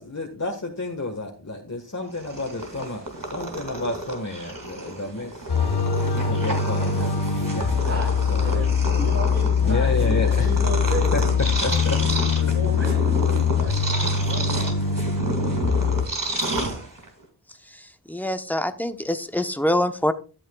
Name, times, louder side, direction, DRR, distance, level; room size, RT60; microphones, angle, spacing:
voice 1, 0.0-5.5 6.1-8.0 8.3-8.6 9.6-10.6 11.1-11.2 11.6-12.0 12.3-12.4 13.7-13.9, left 2 dB, 40° left, 1 dB, 1.6 m, -31 dB
Purr, 2.1-17.2, right 2 dB, 50° right, 2.3 m, -31 dB
sound 1, 5.5-16.1, left 6 dB, 70° left, 1.0 m, -22 dB
voice 2, 8.4-11.2 12.0-13.3 13.6-14.8, right 2 dB, 35° right, 1 dB, 2.7 m, -34 dB
voice 3, 18.1-20.1, left 1 dB, 5° left, 8 dB, 0.9 m, -24 dB
13.0 x 8.6 x 2.3 m, 0.36 s
wide cardioid pair, 40°, 42 cm